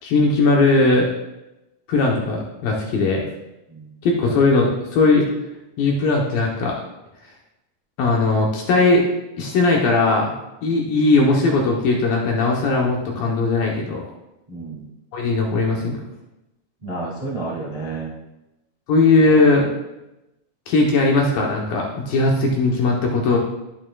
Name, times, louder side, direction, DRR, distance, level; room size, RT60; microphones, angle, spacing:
voice 1, 0.0-1.1 1.9-3.3 4.0-5.3 5.8-6.7 8.0-9.1 9.4-10.3 10.6-14.0 15.1-16.0 18.9-19.7 20.7-23.4, left 3 dB, 70° left, -1 dB, 2.3 m, -18 dB
voice 2, 14.5-14.9 16.8-18.1 19.2-19.4, right 3 dB, 50° right, -6 dB, 0.4 m, -30 dB
11.0 x 8.8 x 2.3 m, 0.95 s
omnidirectional pair, 5.0 m